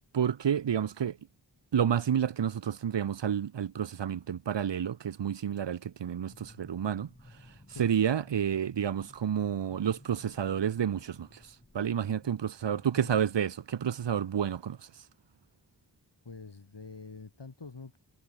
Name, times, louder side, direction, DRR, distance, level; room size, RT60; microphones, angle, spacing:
voice 1, 0.1-1.2 1.7-15.1, right 8 dB, 90° right, 0.6 m, -30 dB
sound 1, 6.3-12.3, left 1 dB, 20° left, 3.0 m, -57 dB
voice 2, 12.7-13.1 16.2-18.0, left 4 dB, 75° left, 2.7 m, -46 dB
wide cardioid pair, 45°, 42 cm